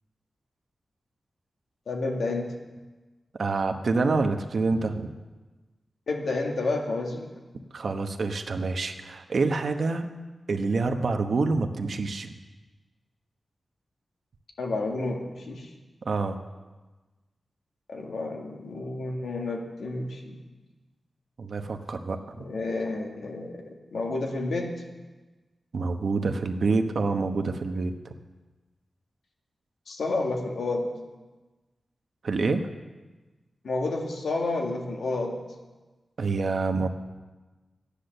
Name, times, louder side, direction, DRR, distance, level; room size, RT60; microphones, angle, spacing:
voice 1, 1.9-2.6 6.1-7.3 14.6-15.7 17.9-20.4 22.4-24.8 29.9-30.9 33.6-35.4, left 2 dB, 85° left, 1 dB, 2.0 m, -30 dB
voice 2, 3.4-5.1 7.7-10.1 10.5-12.3 16.0-16.4 21.4-22.4 25.7-28.1 32.2-32.6 36.2-36.9, right 3 dB, 60° right, 6 dB, 1.0 m, -27 dB
13.5 x 10.0 x 6.7 m, 1.2 s
wide cardioid pair, 130°, 0 cm